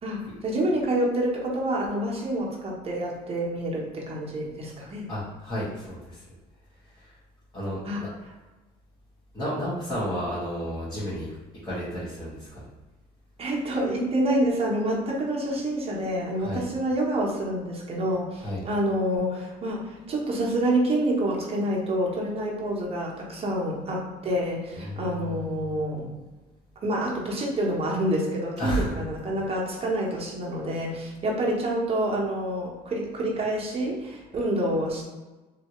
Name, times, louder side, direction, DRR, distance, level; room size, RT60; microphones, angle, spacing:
voice 1, 0.0-5.1 7.8-8.0 13.4-26.2 26.8-35.0, right 1 dB, 35° right, -3 dB, 1.0 m, -27 dB
voice 2, 4.8-6.2 7.0-7.1 7.5-8.1 9.3-11.3 11.6-12.5 16.4-16.6 18.4-18.6 24.8-25.4 28.6-29.0, equal, 20° left, -12 dB, 1.5 m, -32 dB
3.2 x 2.7 x 3.0 m, 1.2 s
cardioid pair, 110°, 17 cm